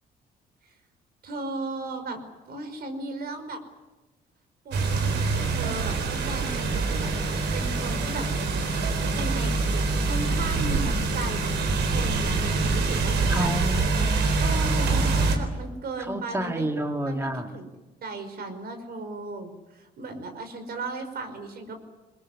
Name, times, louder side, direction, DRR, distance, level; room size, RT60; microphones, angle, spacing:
voice 1, 1.2-2.2 2.5-3.6 4.7-8.3 9.1-11.5 11.8-13.5 14.4-16.7 17.0-17.7 18.0-21.8, right 2 dB, 65° right, 7 dB, 5.2 m, -36 dB
sound 1, 4.7-15.4, right 3 dB, 85° right, 4.1 m, -25 dB
voice 2, 13.3-14.3 16.0-17.6, right 1 dB, 15° right, 5 dB, 2.0 m, -30 dB
22.5 x 21.5 x 9.8 m, 1.1 s
cardioid pair, 85°, 17 cm